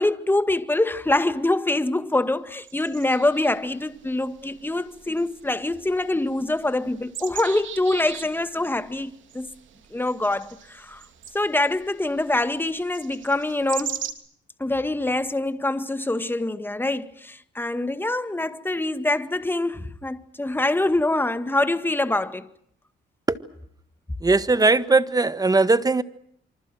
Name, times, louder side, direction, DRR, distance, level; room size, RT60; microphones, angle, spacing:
voice 1, 0.0-9.5 9.9-11.0 11.3-14.0 14.6-22.5, left 2 dB, 10° left, 1.9 m, -25 dB
sound 1, 2.6-14.1, right 9 dB, 75° right, 3.1 m, -41 dB
voice 2, 24.2-26.0, right 3 dB, 20° right, 1.6 m, -19 dB
27.5 x 25.5 x 6.3 m
cardioid pair, 90°, 20 cm